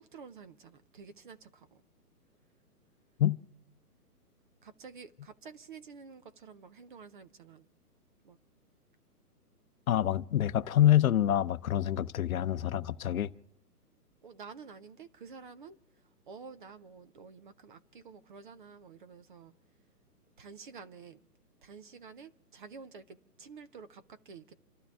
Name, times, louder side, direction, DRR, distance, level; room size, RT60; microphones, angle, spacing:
voice 1, 0.0-1.8 4.6-7.7 8.2-8.4 14.2-15.8 16.3-19.5 20.4-21.3 21.6-24.5, right 5 dB, 30° right, 0.6 m, -50 dB
voice 2, 9.9-13.3, left 11 dB, 60° left, 0.7 m, -26 dB
29.0 x 12.5 x 3.5 m
hypercardioid pair, 140°, 48 cm